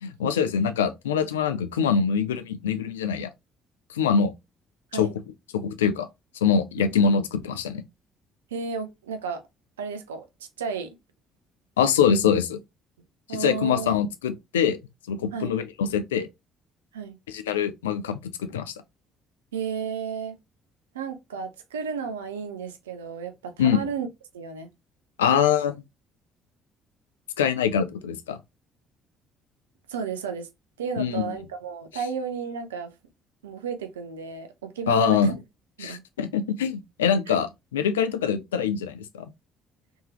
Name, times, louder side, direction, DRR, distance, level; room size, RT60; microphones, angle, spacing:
voice 1, 0.0-3.3 3.9-4.3 4.9-5.1 5.5-6.1 6.4-7.8 11.8-12.6 13.3-14.8 15.1-16.3 17.3-18.7 23.6-23.8 25.2-25.7 27.4-28.4 31.0-31.4 34.9-35.3 35.8-39.3, left 7 dB, 85° left, 0.4 m, -24 dB
voice 2, 6.8-7.2 8.5-9.4 9.8-11.0 13.3-14.0 15.3-15.6 16.9-17.2 19.5-20.4 20.9-24.1 24.3-24.7 29.9-30.5 30.8-32.9 33.4-35.3 35.8-36.0 37.3-37.4, right 6 dB, 90° right, 0.5 m, -33 dB
3.5 x 3.0 x 2.9 m
hypercardioid pair, 50°, 0 cm